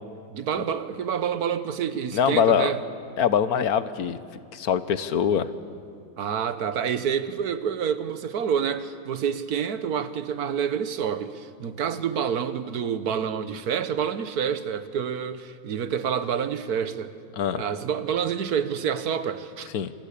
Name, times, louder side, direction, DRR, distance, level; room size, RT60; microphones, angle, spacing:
voice 1, 0.3-2.8 6.2-17.1 17.5-19.7, right 7 dB, 85° right, 1.6 m, -28 dB
voice 2, 2.1-2.7 3.2-4.2 4.5-5.5 17.3-17.6 19.7-19.9, left 8 dB, 75° left, 1.5 m, -23 dB
27.5 x 23.0 x 8.4 m
omnidirectional pair, 1.6 m